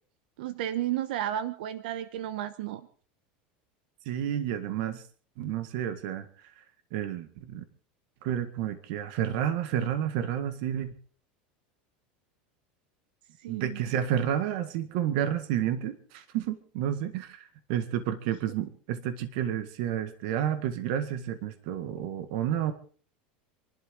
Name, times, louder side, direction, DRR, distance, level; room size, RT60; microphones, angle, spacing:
voice 1, 0.4-2.9 13.4-13.8, right 12 dB, 85° right, 13 dB, 1.1 m, -32 dB
voice 2, 4.0-5.0 5.4-6.3 6.9-7.6 8.2-10.9 13.5-22.7, right 10 dB, 65° right, 10 dB, 1.7 m, -30 dB
27.5 x 12.0 x 3.8 m, 0.43 s
supercardioid pair, 150°, 5 cm